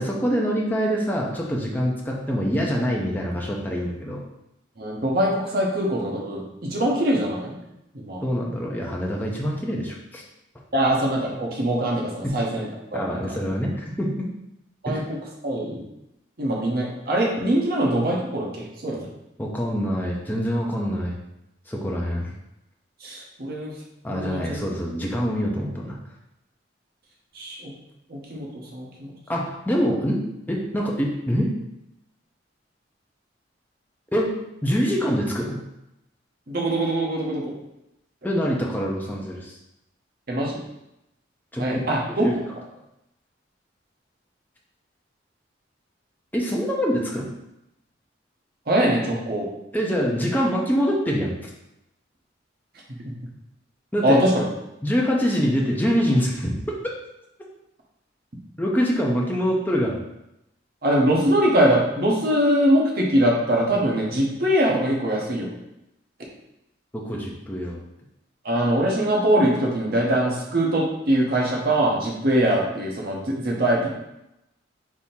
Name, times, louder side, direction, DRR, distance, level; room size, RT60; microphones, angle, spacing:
voice 1, 0.0-4.2 8.2-10.2 12.2-12.4 12.9-14.1 14.9-15.0 19.4-21.2 21.7-22.3 24.0-26.0 29.3-30.2 30.5-31.5 34.1-34.3 34.6-35.6 38.2-39.5 41.5-41.8 42.2-42.3 46.3-47.3 49.7-51.5 53.9-54.2 54.8-56.6 58.6-60.0 66.9-67.8, equal, 10° left, -2 dB, 0.6 m, -25 dB
voice 2, 4.8-7.6 7.9-8.2 10.7-13.3 14.8-15.2 15.4-15.9 16.4-19.1 23.0-23.7 24.1-24.6 27.3-27.7 28.1-29.1 36.5-37.6 40.3-40.6 41.6-42.3 48.7-49.5 53.0-53.1 54.0-54.5 60.8-65.5 68.4-73.9, right 1 dB, 55° right, -2 dB, 0.9 m, -22 dB
3.6 x 2.7 x 4.2 m, 0.87 s
head